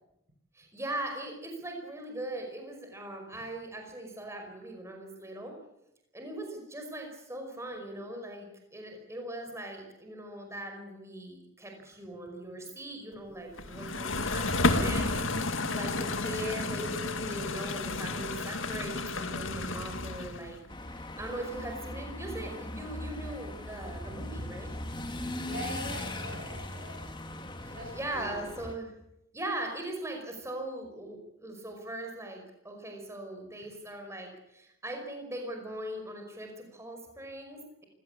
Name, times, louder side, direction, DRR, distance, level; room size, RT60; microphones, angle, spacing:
voice 1, 0.5-5.6 6.1-20.6 21.0-24.7 27.6-28.9 29.3-37.8, right 1 dB, 15° right, 3 dB, 5.4 m, -40 dB
sound 1, 13.6-20.6, left 2 dB, 75° left, 2.1 m, -31 dB
sound 2, 20.7-28.7, left 1 dB, 25° left, 2.3 m, -39 dB
voice 2, 25.4-27.0 27.7-28.5, right 1 dB, 50° right, -2 dB, 7.7 m, -42 dB
27.0 x 17.0 x 8.6 m, 0.85 s
head